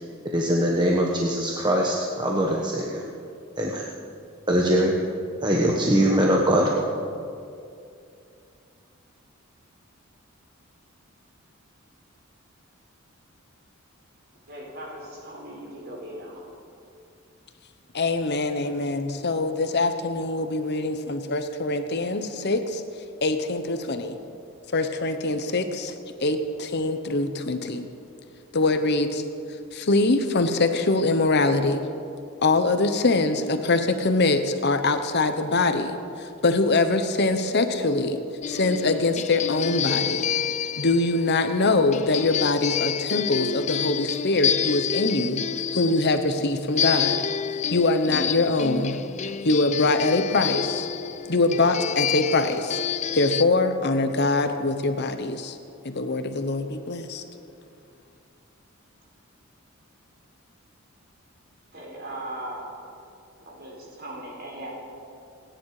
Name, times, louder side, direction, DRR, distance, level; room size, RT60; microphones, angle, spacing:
voice 1, 0.3-3.0 3.6-3.8 4.5-4.9 5.4-6.7, equal, 20° right, -2 dB, 1.2 m, -22 dB
voice 2, 14.5-16.4 61.7-62.6 63.5-64.7, right 1 dB, 50° right, -2 dB, 4.5 m, -38 dB
voice 3, 17.9-22.8 23.2-24.1 24.7-25.9 26.2-27.9 28.5-29.2 29.7-31.9 32.4-38.2 38.5-40.3 40.8-45.4 45.7-47.2 47.7-49.0 49.4-50.9 51.3-52.8 53.1-55.6 55.8-57.2, left 2 dB, 55° left, 8 dB, 1.0 m, -23 dB
sound 1, 38.4-53.4, left 8 dB, 35° left, 0.3 m, -29 dB
29.0 x 10.0 x 4.9 m, 2.5 s
head